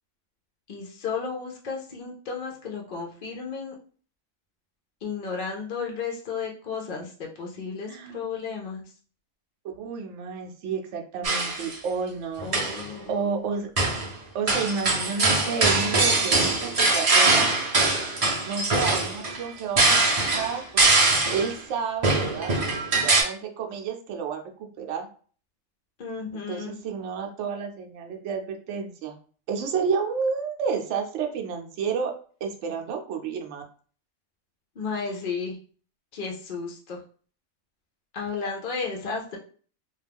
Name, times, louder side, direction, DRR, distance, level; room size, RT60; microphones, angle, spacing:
voice 1, 0.7-3.7 5.0-8.8 12.4-13.3 26.0-26.8 34.8-35.6 36.1-37.0 38.1-39.4, left 5 dB, 60° left, 0 dB, 0.5 m, -33 dB
voice 2, 7.9-8.2 9.6-12.7 13.1-13.7 14.3-17.5 18.5-20.0 20.4-22.6 22.9-24.4 24.8-25.1 26.5-28.4 28.7-29.1 29.5-32.1 32.4-33.6, right 6 dB, 65° right, 3 dB, 0.8 m, -30 dB
sound 1, 11.2-11.7 12.4-12.9 13.8-14.1 14.5-21.5 22.0-23.2, right 3 dB, 45° right, 0.5 m, -22 dB
2.3 x 2.3 x 3.3 m, 0.42 s
omnidirectional pair, 1.4 m